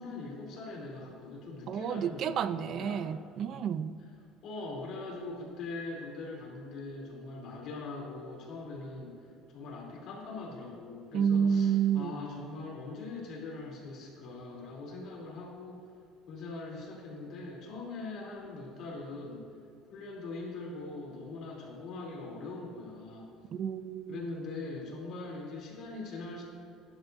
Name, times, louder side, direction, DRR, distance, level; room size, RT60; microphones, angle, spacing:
voice 1, 0.0-3.1 4.4-9.2 9.5-15.8 16.3-19.5 19.9-23.3 24.1-26.4, left 3 dB, 50° left, 3.1 m, -42 dB
voice 2, 1.7-4.0 11.1-12.2 23.5-24.3, right 8 dB, 40° right, 0.4 m, -30 dB
16.5 x 11.0 x 2.7 m
cardioid pair, 160°, 0 cm